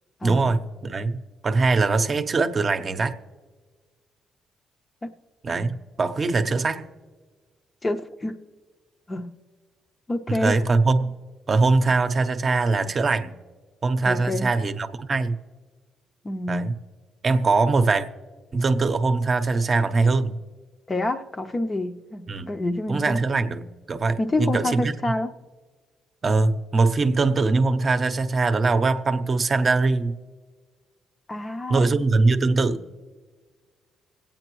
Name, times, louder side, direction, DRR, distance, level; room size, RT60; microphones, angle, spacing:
voice 1, 0.2-3.2 5.4-6.9 10.3-11.1 11.5-13.3 13.8-15.4 16.5-16.7 17.2-18.1 18.5-20.4 22.3-22.6 22.9-25.0 26.2-30.2 31.7-32.8, right 3 dB, 40° right, 8 dB, 0.7 m, -22 dB
voice 2, 7.8-8.3 9.1-9.3 10.1-10.5 14.0-14.5 16.2-16.7 20.9-23.2 24.2-25.3 31.3-31.9, left 2 dB, 25° left, 6 dB, 0.6 m, -28 dB
25.0 x 8.9 x 3.1 m, 1.4 s
cardioid pair, 90°, 0 cm